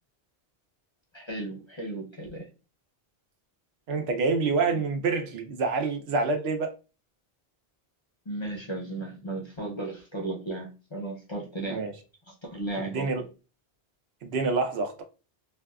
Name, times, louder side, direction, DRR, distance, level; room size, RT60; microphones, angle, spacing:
voice 1, 1.1-2.5 8.3-11.8 12.3-13.1, right 2 dB, 35° left, 0.5 m, -35 dB
voice 2, 3.9-6.7 11.7-11.9 12.8-13.2 14.2-15.0, right 4 dB, 75° right, 0.8 m, -27 dB
2.5 x 2.3 x 2.3 m
omnidirectional pair, 1.1 m